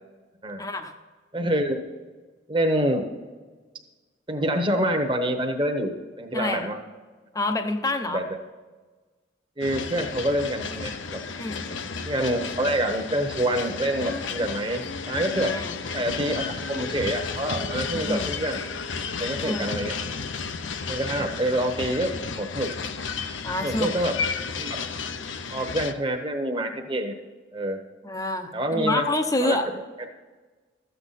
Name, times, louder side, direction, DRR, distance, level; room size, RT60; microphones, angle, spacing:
voice 1, 0.6-0.9 6.3-6.6 7.3-8.2 11.4-11.8 15.5-15.8 18.0-18.3 19.4-19.7 21.2-21.3 23.4-23.9 28.0-29.7, left 2 dB, 20° left, 6 dB, 0.6 m, -27 dB
voice 2, 1.3-1.8 2.5-3.0 4.3-6.8 8.1-8.4 9.6-11.2 12.1-15.6 15.9-18.6 19.2-20.0 20.9-22.7 23.6-24.2 24.6-24.8 25.5-27.1 27.5-27.8 28.5-29.0 29.4-29.6, right 1 dB, 25° right, 3 dB, 1.0 m, -26 dB
sound 1, 9.6-25.9, left 5 dB, 75° left, 0.7 m, -32 dB
13.5 x 8.0 x 4.1 m, 1.3 s
head